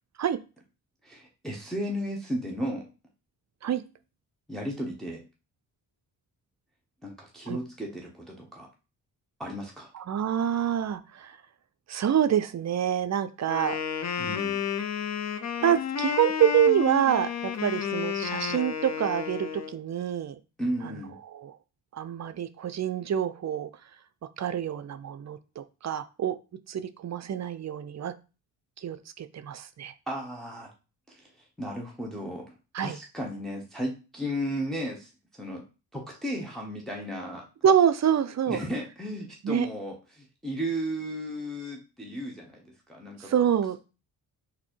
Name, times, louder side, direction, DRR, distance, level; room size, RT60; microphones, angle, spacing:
voice 1, 1.0-2.9 4.5-5.2 7.0-8.7 9.4-9.9 14.2-14.6 20.6-21.2 30.1-30.7 31.1-31.3 31.6-35.6 35.9-37.5 38.5-43.3, equal, ahead, -2 dB, 1.1 m, -34 dB
voice 2, 9.9-11.4 11.9-13.8 15.6-20.4 21.3-21.5 21.9-23.7 24.4-26.4 26.7-28.1 28.8-29.9 32.7-33.0 37.6-38.6 39.4-39.7 43.2-43.8, right 9 dB, 45° right, 12 dB, 0.5 m, -26 dB
Wind instrument woodwind instrument, 13.5-19.7, left 7 dB, 45° left, 0.6 m, -31 dB
4.2 x 2.8 x 4.4 m, 0.31 s
cardioid pair, 75°, 39 cm